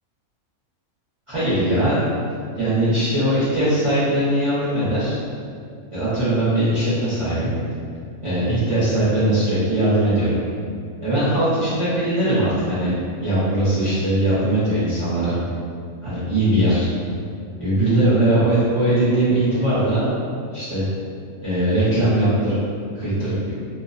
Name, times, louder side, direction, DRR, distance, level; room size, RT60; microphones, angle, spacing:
voice 1, 1.3-2.0 2.6-5.2 5.9-7.5 8.2-10.3 11.0-12.9 13.2-15.4 16.0-16.9 17.6-20.0 20.5-20.9 21.4-22.6 22.9-23.5, right 1 dB, 35° right, -14 dB, 0.5 m, -20 dB
2.3 x 2.1 x 2.4 m, 2.3 s
omnidirectional pair, 1.5 m